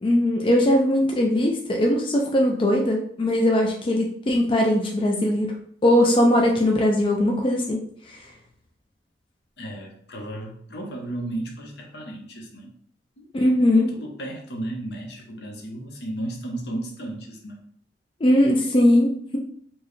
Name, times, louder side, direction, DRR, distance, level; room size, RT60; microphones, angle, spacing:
voice 1, 0.0-5.5 5.8-7.8 8.1-8.2 13.3-13.9 18.2-19.4, left 1 dB, 30° left, 0 dB, 0.4 m, -20 dB
voice 2, 9.6-12.7 13.2-13.3 13.9-17.7, right 1 dB, 70° left, 1 dB, 0.8 m, -34 dB
4.4 x 2.1 x 3.1 m, 0.64 s
head